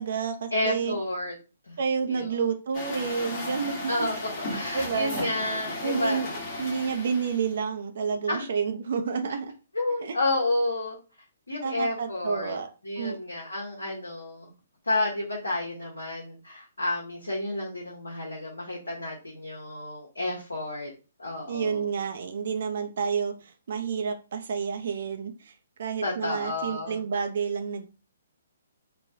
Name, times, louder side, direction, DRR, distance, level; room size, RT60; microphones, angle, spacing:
voice 1, 0.0-1.0 1.8-4.1 4.7-5.3 5.8-6.3 6.6-9.5 10.0-10.2 11.6-12.7 13.0-13.2 21.5-25.5 25.8-27.9, right 6 dB, 55° right, 6 dB, 0.4 m, -30 dB
voice 2, 0.5-1.3 1.7-1.8 2.1-2.3 3.9-4.1 4.5-6.2 8.3-8.5 9.7-11.0 11.5-12.6 12.8-14.5 14.9-20.9 21.2-21.9 26.0-27.0, left 2 dB, 85° left, -3 dB, 0.9 m, -30 dB
Truck, 2.7-7.6, left 1 dB, 35° left, 1.2 m, -35 dB
3.2 x 2.2 x 2.6 m, 0.32 s
figure-of-eight pair, 130°, 0 cm